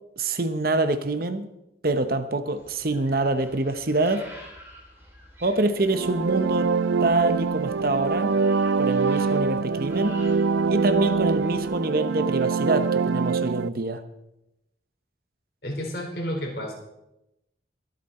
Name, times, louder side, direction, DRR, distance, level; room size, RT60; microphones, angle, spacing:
voice 1, 0.2-1.5 1.8-4.2 5.4-8.4 8.8-10.2 10.7-14.0, right 2 dB, 50° right, 10 dB, 0.9 m, -25 dB
The White-Winged Chough (Corcorax melanorhamphos), 2.5-11.7, equal, 15° right, 3.1 m, -49 dB
sound 1, 5.8-13.7, right 5 dB, 80° right, 0.4 m, -24 dB
voice 2, 15.6-16.7, equal, 55° left, 0 dB, 4.2 m, -31 dB
23.0 x 8.3 x 4.3 m, 0.87 s
head